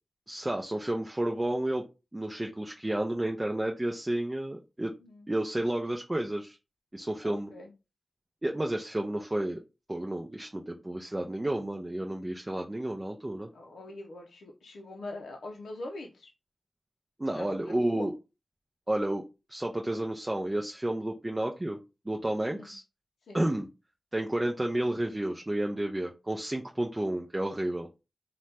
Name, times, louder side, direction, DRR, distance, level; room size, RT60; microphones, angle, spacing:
voice 1, 0.3-1.8 2.1-4.9 5.3-6.6 6.9-7.5 8.4-9.6 9.9-13.5 17.2-18.1 18.9-19.2 19.5-21.8 22.1-22.8 23.3-23.7 24.1-27.9, right 1 dB, 25° right, 1 dB, 0.4 m, -31 dB
voice 2, 7.2-7.7 13.5-16.3 17.3-18.1 22.5-22.7 23.3-23.4, left 2 dB, 85° left, 1 dB, 0.4 m, -43 dB
2.7 x 2.1 x 3.3 m, 0.28 s
cardioid pair, 40°, 0 cm